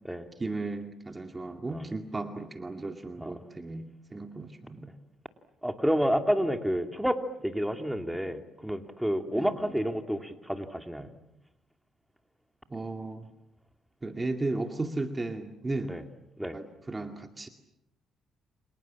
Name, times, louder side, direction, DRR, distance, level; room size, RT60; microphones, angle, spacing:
voice 1, 0.4-4.9 9.3-9.7 12.7-13.3 14.0-16.0 16.5-17.5, right 2 dB, 20° right, 6 dB, 2.1 m, -35 dB
voice 2, 5.6-11.1 15.9-16.0 16.4-16.6, equal, 5° right, 6 dB, 2.7 m, -29 dB
29.5 x 27.0 x 7.4 m, 0.84 s
cardioid pair, 90°, 0 cm